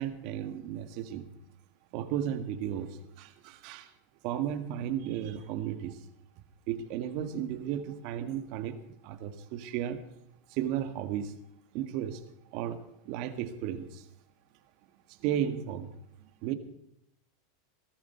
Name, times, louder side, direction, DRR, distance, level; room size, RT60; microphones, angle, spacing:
voice 1, 0.0-1.4 1.9-3.9 4.2-6.0 6.7-10.0 10.5-11.4 11.7-12.2 12.5-14.1 15.1-15.9 16.2-16.5, right 10 dB, 55° right, 9 dB, 1.8 m, -34 dB
18.0 x 14.0 x 4.5 m, 0.77 s
supercardioid pair, 125°, 0 cm